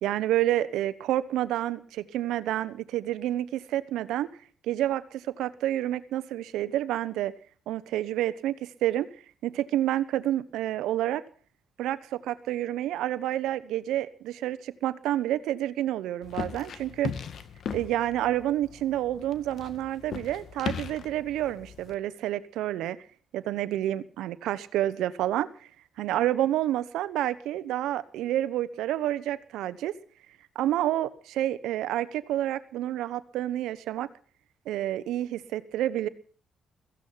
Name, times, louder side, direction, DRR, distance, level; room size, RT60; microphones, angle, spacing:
voice 1, 0.0-4.3 4.6-7.3 7.7-9.1 9.4-11.2 11.8-17.1 17.7-23.0 23.3-25.5 26.0-29.9 30.5-34.1 34.7-36.1, right 13 dB, 90° right, 16 dB, 1.1 m, -29 dB
sound 1, 16.2-21.9, left 7 dB, 65° left, 1.9 m, -38 dB
16.0 x 15.5 x 5.8 m, 0.43 s
cardioid pair, 85°, 0 cm